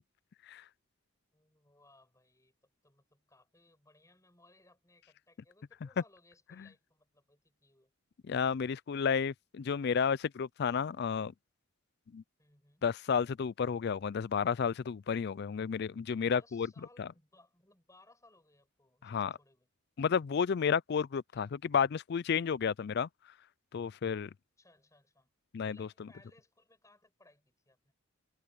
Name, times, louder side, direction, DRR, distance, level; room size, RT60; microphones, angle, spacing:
voice 1, 1.3-7.9 12.4-12.9 16.1-19.7 21.3-21.6 24.6-25.3 25.7-27.9, left 2 dB, 15° left, 7.8 m, -65 dB
voice 2, 8.3-11.3 12.1-12.2 12.8-16.7 17.0-17.1 19.0-19.3 20.0-23.1 23.7-24.3 25.5-25.9, left 6 dB, 50° left, 0.3 m, -31 dB
head